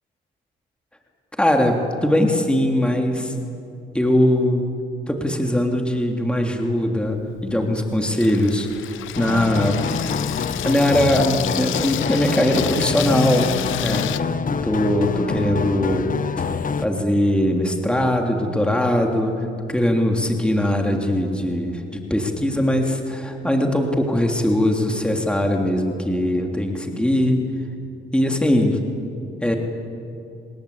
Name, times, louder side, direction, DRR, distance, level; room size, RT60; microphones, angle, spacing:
voice 1, 1.4-3.3 3.9-4.7 5.1-10.2 10.6-14.1 14.6-16.1 16.4-27.4 28.1-28.8 29.4-29.6, left 1 dB, 5° left, 2 dB, 3.0 m, -21 dB
Water tap faucet / Sink (filling or washing), 7.1-14.2, left 13 dB, 80° left, 0.8 m, -31 dB
sound 1, 9.1-16.9, left 5 dB, 45° left, 1.1 m, -26 dB
29.5 x 20.0 x 8.6 m, 2.6 s
cardioid pair, 90°, 20 cm